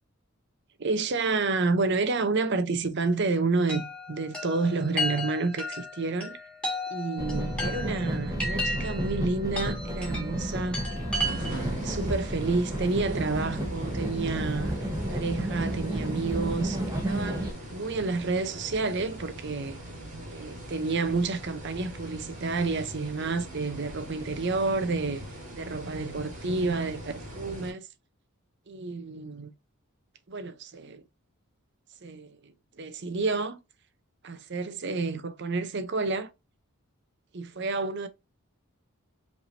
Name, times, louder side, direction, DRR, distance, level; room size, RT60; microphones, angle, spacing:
voice 1, 0.8-6.4 6.9-10.8 11.3-19.8 20.3-25.2 25.5-27.9 28.7-29.5 30.3-31.0 32.0-33.6 34.2-36.3 37.3-38.1, right 3 dB, 50° right, 0.7 m, -30 dB
Chime, 3.7-11.8, left 1 dB, 5° left, 1.7 m, -35 dB
sound 1, 7.2-17.5, right 1 dB, 15° right, 1.1 m, -32 dB
sound 2, 11.2-27.7, right 1 dB, 35° right, 2.8 m, -41 dB
5.3 x 3.3 x 2.6 m
head